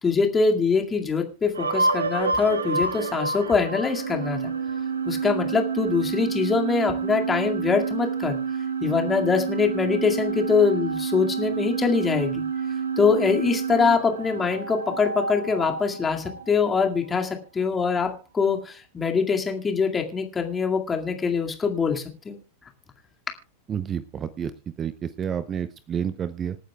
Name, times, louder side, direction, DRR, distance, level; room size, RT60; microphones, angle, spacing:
voice 1, 0.0-4.5 5.1-8.4 8.8-12.5 13.0-22.4, left 5 dB, 15° left, 3 dB, 2.1 m, -23 dB
sound 1, 1.5-17.4, right 5 dB, 70° right, 1.3 m, -29 dB
voice 2, 23.7-24.5 24.8-26.6, right 8 dB, 25° right, 15 dB, 0.7 m, -29 dB
26.5 x 9.1 x 2.3 m, 0.34 s
figure-of-eight pair, 90°, 0 cm